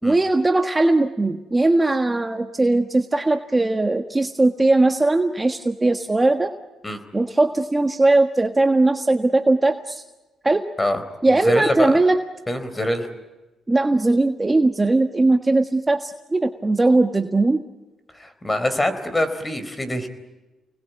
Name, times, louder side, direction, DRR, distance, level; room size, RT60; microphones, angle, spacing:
voice 1, 0.0-6.5 7.1-10.0 10.4-10.7 11.2-12.2 13.7-17.6, right 2 dB, 20° right, 5 dB, 1.5 m, -19 dB
voice 2, 11.3-11.9 12.5-13.1 18.1-20.1, left 1 dB, 15° left, 10 dB, 4.0 m, -24 dB
29.5 x 20.5 x 9.3 m, 1.1 s
cardioid pair, 90°, 0 cm